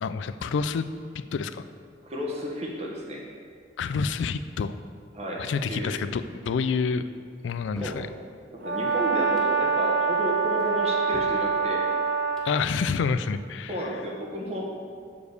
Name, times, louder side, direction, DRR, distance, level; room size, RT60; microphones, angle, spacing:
voice 1, 0.0-0.8 1.1-1.6 3.8-4.8 5.4-7.0 7.4-8.1 12.4-13.9, left 5 dB, 80° left, 12 dB, 0.3 m, -28 dB
voice 2, 2.0-3.2 5.1-5.9 7.8-8.0 8.5-11.9 13.7-14.6, equal, 35° right, -2 dB, 1.2 m, -32 dB
sound 1, 7.5-8.1 9.2-9.6 10.6-11.5 12.2-12.6, equal, 5° left, 0.8 m, -46 dB
Brass instrument, 8.6-12.5, right 5 dB, 60° right, 1.0 m, -25 dB
7.0 x 5.0 x 6.5 m, 2.2 s
head